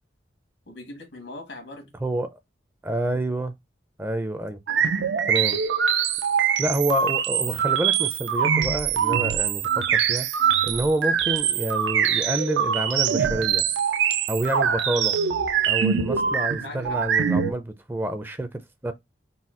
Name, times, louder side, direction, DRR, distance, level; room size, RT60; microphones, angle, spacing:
voice 1, 0.7-1.9 4.7-5.0 15.8-16.0 16.6-17.0, left 2 dB, 85° left, 1.6 m, -41 dB
voice 2, 2.0-2.4 2.8-3.6 4.0-4.6 5.3-5.6 6.6-10.3 10.6-13.6 14.3-15.2 15.7-18.9, right 1 dB, 10° right, 0.4 m, -28 dB
sound 1, 4.7-17.5, right 7 dB, 80° right, 0.5 m, -23 dB
4.1 x 2.2 x 3.7 m
head